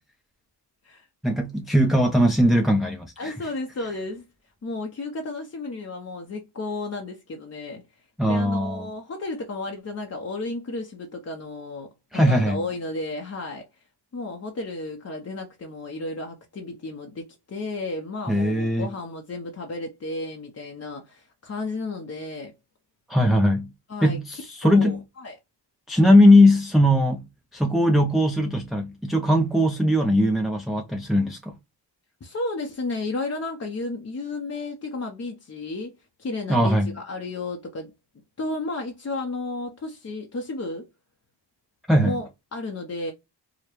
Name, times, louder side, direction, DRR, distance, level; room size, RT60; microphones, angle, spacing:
voice 1, 1.2-3.3 8.2-8.9 12.1-12.6 18.3-18.9 23.1-23.7 24.0-25.0 25.9-27.2 27.5-31.6 36.5-37.0 41.9-42.2, left 1 dB, ahead, 0.4 m, -19 dB
voice 2, 3.2-4.3 4.6-7.8 8.3-13.7 14.1-22.5 23.9-24.2 24.6-25.4 32.2-35.9 36.2-37.9 38.4-40.9 42.0-43.1, left 2 dB, 35° left, 0.7 m, -33 dB
4.8 x 2.1 x 2.9 m
wide cardioid pair, 100°, 43 cm